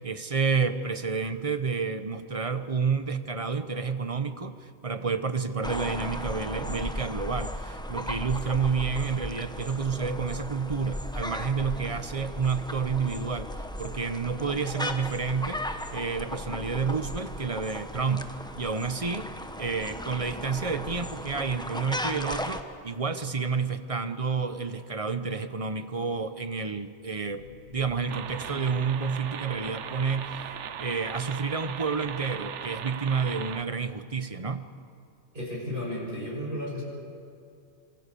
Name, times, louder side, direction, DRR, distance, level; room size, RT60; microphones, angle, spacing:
voice 1, 0.0-13.5 13.8-15.6 15.9-19.3 19.6-27.4 27.7-30.5 30.8-34.6, right 5 dB, 30° right, 10 dB, 1.0 m, -30 dB
sound 1, 5.6-22.6, left 1 dB, 5° left, 0.9 m, -36 dB
sound 2, 27.0-30.1, left 4 dB, 85° left, 3.9 m, -46 dB
sound 3, 28.1-33.6, right 8 dB, 75° right, 1.1 m, -38 dB
voice 2, 35.3-36.8, left 1 dB, 45° right, -3 dB, 6.6 m, -33 dB
26.0 x 23.5 x 7.0 m, 2.4 s
omnidirectional pair, 1.2 m